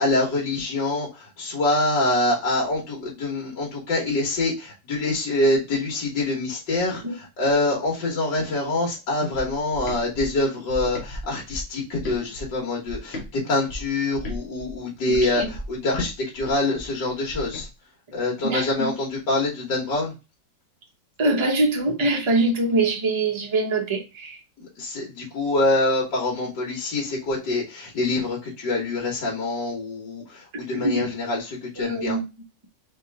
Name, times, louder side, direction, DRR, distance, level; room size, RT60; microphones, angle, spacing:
voice 1, 0.0-17.7 18.1-20.1 24.6-32.2, left 2 dB, 70° left, 2.1 m, -25 dB
sound 1, 9.3-13.3 13.7-17.7, equal, 45° left, 1.1 m, -37 dB
voice 2, 15.1-15.5 18.4-18.9 21.2-24.4 30.5-31.0 31.8-32.2, right 2 dB, 25° right, 0.6 m, -24 dB
4.0 x 3.2 x 3.5 m
omnidirectional pair, 1.9 m